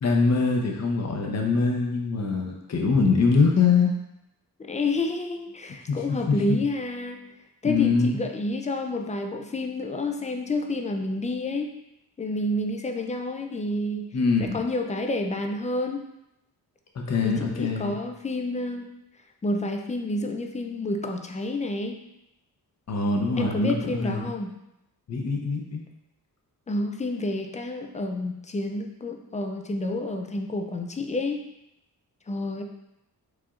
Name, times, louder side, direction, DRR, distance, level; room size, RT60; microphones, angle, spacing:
voice 1, 0.0-3.9 5.9-6.6 7.6-8.2 14.1-14.6 16.9-17.9 22.9-24.3 25.1-25.8, left 4 dB, 45° left, 1 dB, 0.7 m, -23 dB
voice 2, 4.6-7.2 7.6-11.7 12.2-14.1 14.4-16.0 17.2-18.9 19.4-22.0 23.4-24.6 26.7-31.4 32.3-32.6, left 2 dB, 20° left, 4 dB, 0.3 m, -29 dB
4.9 x 4.2 x 2.4 m, 0.87 s
wide cardioid pair, 160°, 38 cm